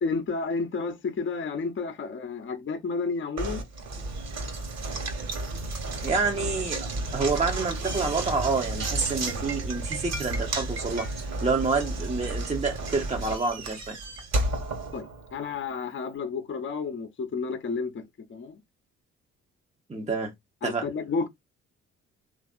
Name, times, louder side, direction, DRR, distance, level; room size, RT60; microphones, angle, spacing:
voice 1, 0.0-3.6 14.9-15.1 15.3-18.6 20.6-21.3, left 4 dB, 35° left, 0.8 m, -31 dB
Knock, 3.4-15.5, right 2 dB, 45° right, 1.5 m, -32 dB
voice 2, 6.0-6.9 7.1-11.1 11.4-14.0 19.9-20.3 20.6-20.8, right 4 dB, 20° right, 0.9 m, -28 dB
3.3 x 2.6 x 2.4 m
hypercardioid pair, 50°, 36 cm